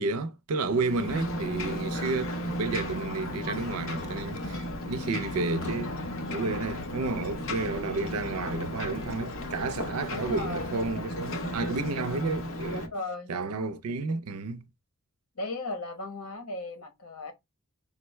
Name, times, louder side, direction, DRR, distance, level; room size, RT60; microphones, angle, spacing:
voice 1, 0.0-6.0 6.3-12.8 13.3-14.7, right 3 dB, 85° right, 0.5 m, -31 dB
Ocean, 0.6-12.9, left 1 dB, 65° left, 0.7 m, -35 dB
voice 2, 10.1-10.7 12.7-13.3 15.4-17.3, left 2 dB, 85° left, 1.3 m, -36 dB
4.9 x 2.2 x 3.1 m
head